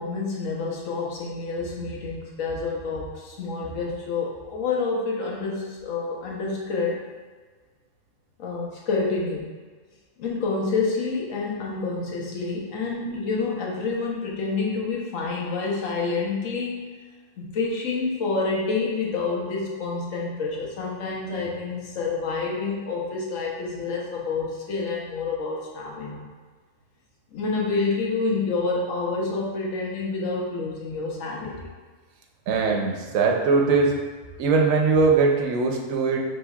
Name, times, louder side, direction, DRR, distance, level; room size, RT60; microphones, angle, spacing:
voice 1, 0.0-7.0 8.4-9.5 10.2-16.9 17.4-26.3 27.3-31.7, left 4 dB, 75° left, -3 dB, 1.1 m, -28 dB
voice 2, 32.5-34.0 34.4-36.2, right 4 dB, 85° right, 1 dB, 1.0 m, -21 dB
5.1 x 3.3 x 2.3 m, 1.4 s
omnidirectional pair, 1.4 m